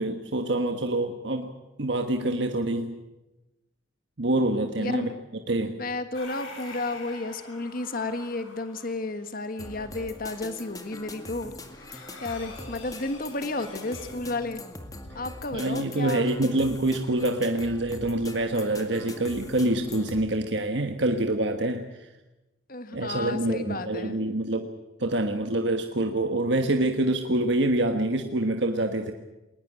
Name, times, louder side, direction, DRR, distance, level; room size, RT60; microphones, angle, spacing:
voice 1, 0.0-1.5 1.8-3.0 4.2-5.1 5.5-5.8 15.5-22.1 22.9-24.7 25.0-29.1, right 1 dB, 60° right, 5 dB, 1.4 m, -26 dB
voice 2, 4.8-5.1 5.8-14.6 15.1-16.3 22.7-24.2, left 2 dB, 45° left, 9 dB, 1.4 m, -32 dB
sound 1, 6.1-14.1, left 2 dB, 90° left, 5.5 m, -47 dB
sound 2, 9.6-20.3, left 1 dB, 20° left, 2.0 m, -42 dB
21.0 x 19.5 x 8.8 m, 1.0 s
head